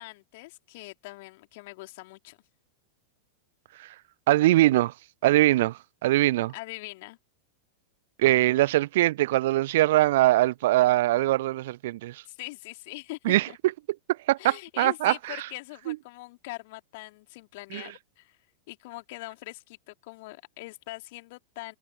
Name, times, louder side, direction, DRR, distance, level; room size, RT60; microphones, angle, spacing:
voice 1, 0.0-2.4 6.5-7.2 12.3-13.6 14.4-18.4 18.7-21.8, left 22 dB, 50° left, 3.6 m, -42 dB
voice 2, 4.3-4.9 5.2-6.5 8.2-12.2 13.2-13.5 14.1-15.4 15.9-16.0 17.7-17.8, right 16 dB, 55° right, 0.7 m, -22 dB
figure-of-eight pair, 90°, 0 cm